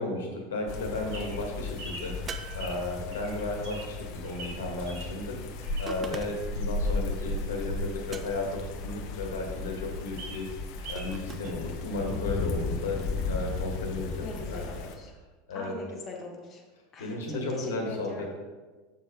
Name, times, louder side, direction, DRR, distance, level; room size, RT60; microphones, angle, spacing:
voice 1, 0.0-10.5 10.9-14.7 15.5-15.7 17.0-18.3, left 2 dB, 75° left, 1 dB, 1.7 m, -34 dB
sound 1, 0.7-15.0, left 3 dB, 55° left, 0.7 m, -35 dB
Bird vocalization bird call bird song, 0.7-6.2 6.6-8.8 9.2-9.3 9.5-9.6 9.9-11.2 11.4-11.5, right 2 dB, 60° right, 2.1 m, -45 dB
sound 2, 2.3-3.4 5.9-6.6 8.1-8.7 10.9-11.6, right 5 dB, 25° right, 0.6 m, -42 dB
voice 2, 14.2-15.1 15.5-16.6 16.9-18.3, left 3 dB, 35° left, 0 dB, 1.3 m, -41 dB
6.7 x 6.4 x 3.9 m, 1.3 s
figure-of-eight pair, 80°, 0 cm